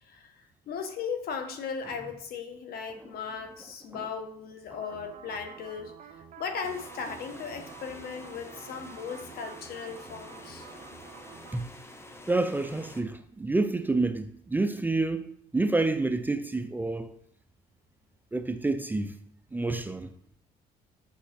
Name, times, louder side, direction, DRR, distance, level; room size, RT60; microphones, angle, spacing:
voice 1, 0.0-5.9 6.4-10.7, left 6 dB, 65° left, 1.3 m, -37 dB
sound 1, 4.7-11.6, right 7 dB, 50° right, 0.7 m, -49 dB
sound 2, 6.6-13.0, left 1 dB, 15° left, 1.0 m, -48 dB
voice 2, 12.3-17.1 18.3-19.2 19.5-20.1, right 2 dB, 10° right, 0.5 m, -28 dB
7.3 x 6.3 x 4.4 m
cardioid pair, 110°, 17 cm